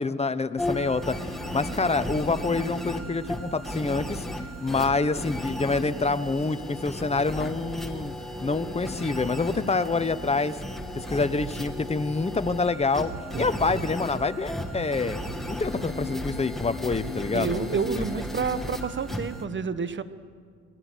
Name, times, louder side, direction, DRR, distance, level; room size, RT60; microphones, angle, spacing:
voice 1, 0.0-4.2 4.6-8.1 8.4-10.6 10.9-13.1 13.4-15.2 15.5-17.7 18.0-18.1, left 3 dB, 20° left, 11 dB, 1.1 m, -27 dB
sound 1, 0.6-19.4, left 1 dB, ahead, 2.6 m, -35 dB
voice 2, 13.3-13.9 17.3-20.0, right 5 dB, 40° right, 12 dB, 1.3 m, -30 dB
28.5 x 20.5 x 6.4 m, 2.1 s
cardioid pair, 90°, 30 cm